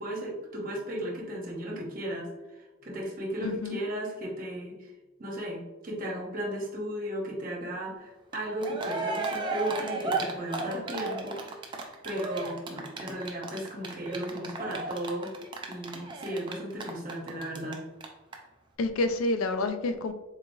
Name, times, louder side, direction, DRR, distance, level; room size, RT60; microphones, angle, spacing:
voice 1, 0.0-2.3 2.6-4.9 5.2-11.7 12.0-15.3 15.7-17.8, right 1 dB, 40° right, -2 dB, 0.8 m, -35 dB
voice 2, 3.4-3.8 18.8-20.1, left 2 dB, 75° left, 8 dB, 0.3 m, -28 dB
Cheering, 8.3-8.4 8.6-17.7 18.0-18.1 18.3-18.4, right 3 dB, 20° right, 0.4 m, -34 dB
3.8 x 2.9 x 2.6 m, 1.1 s
head